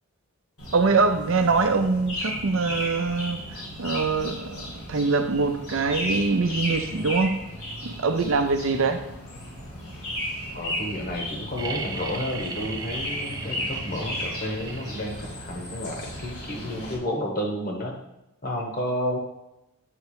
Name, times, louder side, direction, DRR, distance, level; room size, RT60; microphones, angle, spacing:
sound 1, 0.6-17.0, left 1 dB, 85° left, 2.1 m, -35 dB
voice 1, 0.7-7.3 7.8-9.0, right 4 dB, 65° right, 7 dB, 0.6 m, -24 dB
voice 2, 10.5-17.9 18.4-19.2, left 1 dB, 40° left, 1 dB, 1.1 m, -31 dB
sound 2, 11.6-15.3 17.0-17.1, right 3 dB, 15° right, 0.4 m, -36 dB
7.8 x 3.2 x 4.8 m, 0.90 s
head